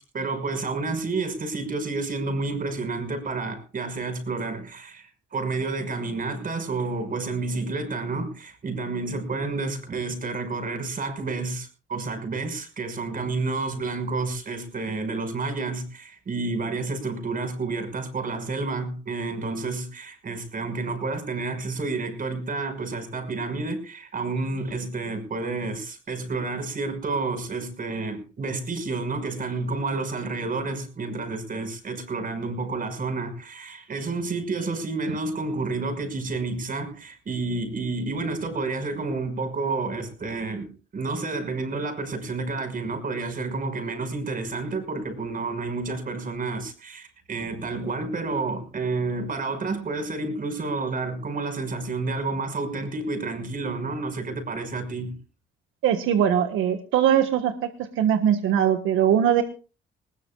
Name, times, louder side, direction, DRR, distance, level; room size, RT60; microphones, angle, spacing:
voice 1, 0.0-55.2, right 3 dB, 45° right, 5.8 m, -30 dB
voice 2, 55.8-57.5 58.0-59.4, right 9 dB, 85° right, 1.5 m, -21 dB
20.5 x 19.5 x 2.4 m
cardioid pair, 90°, 20 cm